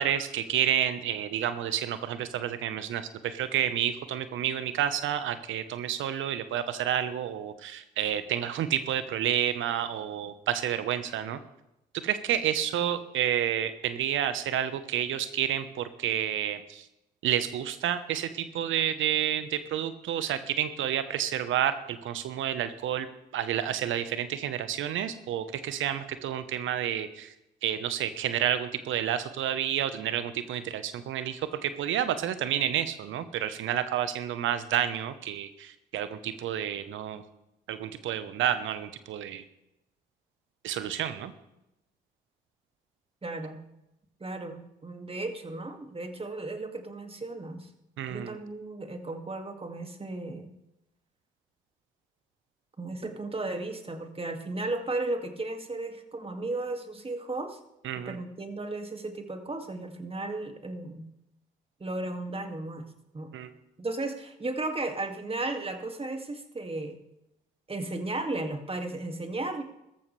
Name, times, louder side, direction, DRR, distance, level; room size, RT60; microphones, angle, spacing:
voice 1, 0.0-11.4 12.0-16.9 17.2-23.1 23.3-27.3 27.6-37.2 37.7-39.4 40.6-41.3 48.0-48.4 57.8-58.2 63.3-63.5, right 10 dB, 70° right, 12 dB, 1.1 m, -30 dB
voice 2, 43.2-43.6 44.2-47.7 48.1-50.5 52.8-57.6 58.1-61.0 61.8-62.8 63.1-63.3 63.8-67.0 67.7-69.6, right 2 dB, 25° right, 6 dB, 2.2 m, -35 dB
17.5 x 14.0 x 3.3 m, 0.88 s
hypercardioid pair, 45°, 21 cm